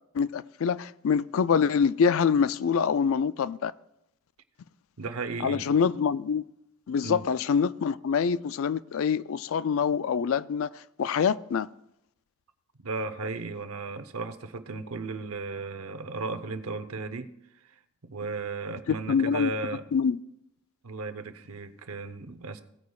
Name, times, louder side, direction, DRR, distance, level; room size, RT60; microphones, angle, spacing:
voice 1, 0.1-3.7 5.4-6.4 6.9-10.7 11.0-11.7 18.9-19.5 19.9-20.2, left 6 dB, 65° left, 0.3 m, -25 dB
voice 2, 5.0-5.7 7.0-7.3 12.8-17.3 18.0-19.8 20.8-22.6, right 3 dB, 80° right, 0.8 m, -35 dB
17.5 x 9.3 x 2.3 m
head